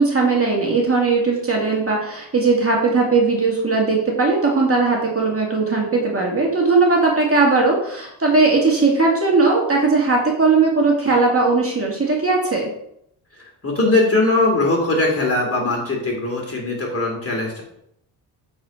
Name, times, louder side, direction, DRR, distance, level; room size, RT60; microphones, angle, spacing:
voice 1, 0.0-12.7, right 3 dB, 30° right, -2 dB, 2.3 m, -18 dB
voice 2, 13.3-17.6, left 2 dB, 30° left, -1 dB, 3.1 m, -20 dB
7.9 x 4.5 x 4.4 m, 0.74 s
supercardioid pair, 65°, 46 cm